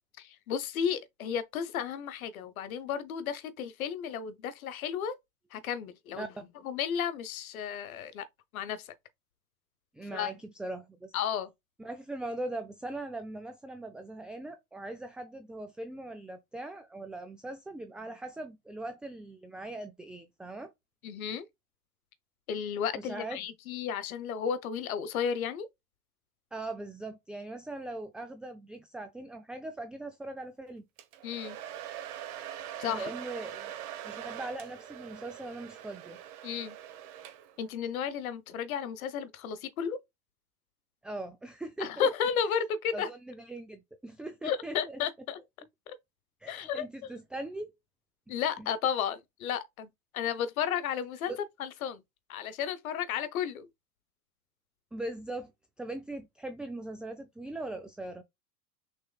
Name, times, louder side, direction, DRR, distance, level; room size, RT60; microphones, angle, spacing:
voice 1, 0.2-5.2 5.5-6.3 6.6-8.2 8.5-8.9 10.1-10.3 11.1-11.5 21.0-21.5 22.5-25.7 31.2-31.6 32.8-33.1 36.4-36.8 37.6-40.0 41.8-43.1 44.4-45.4 45.9-46.0 46.5-46.8 48.3-51.3 51.6-52.0 52.3-53.7, left 8 dB, 70° left, 1.1 m, -33 dB
voice 2, 9.9-11.1 11.8-20.7 22.9-23.4 26.5-30.8 32.9-33.7 34.0-36.2 41.0-42.1 42.9-45.0 46.4-47.7 48.6-48.7 51.3-51.4 54.9-55.5 55.8-58.2, right 2 dB, ahead, 0.3 m, -40 dB
Domestic sounds home sounds, 31.0-37.7, right 11 dB, 55° right, 1.2 m, -43 dB
6.3 x 3.5 x 2.3 m
figure-of-eight pair, 85°, 44 cm